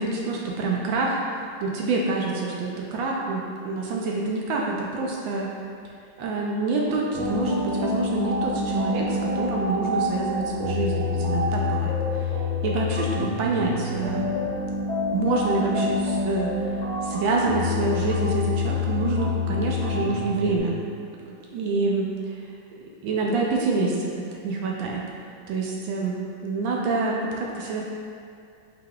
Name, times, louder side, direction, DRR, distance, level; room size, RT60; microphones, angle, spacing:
voice 1, 0.0-5.5 6.2-12.3 12.6-14.3 15.1-16.7 17.0-20.8 21.5-22.1 23.0-25.0 25.5-26.1 26.4-27.8, right 3 dB, 75° right, -2 dB, 1.2 m, -27 dB
sound 1, 7.1-20.6, left 3 dB, 40° left, 0.7 m, -27 dB
5.6 x 3.9 x 2.3 m, 2.3 s
omnidirectional pair, 2.3 m